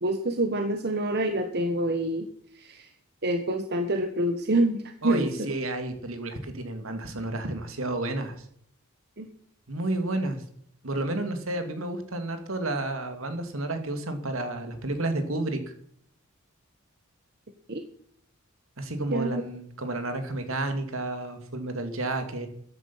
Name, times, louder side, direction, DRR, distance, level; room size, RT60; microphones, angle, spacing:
voice 1, 0.0-2.3 2.6-2.9 3.2-5.5 9.2-9.3 17.7-17.8 19.1-19.3, right 1 dB, 50° right, 6 dB, 1.2 m, -26 dB
voice 2, 5.0-8.4 9.7-10.4 10.8-15.6 18.8-22.5, right 2 dB, 70° right, 7 dB, 2.4 m, -31 dB
14.0 x 10.5 x 5.7 m, 0.67 s
head